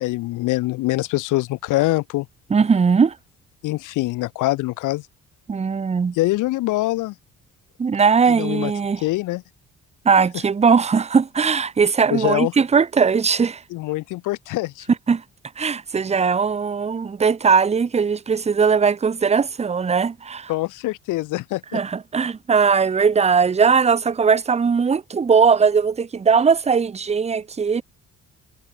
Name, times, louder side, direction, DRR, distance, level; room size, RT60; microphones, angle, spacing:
voice 1, 0.0-2.3 3.6-5.0 6.2-7.1 8.3-8.7 9.0-9.4 12.1-12.5 13.7-14.9 20.5-21.8, left 19 dB, 85° left, 0.6 m, -24 dB
voice 2, 2.5-3.2 5.5-6.2 7.8-9.0 10.0-13.6 15.1-15.2 15.6-20.5 21.7-27.8, right 5 dB, 20° right, 0.6 m, -19 dB
cardioid pair, 90°, 30 cm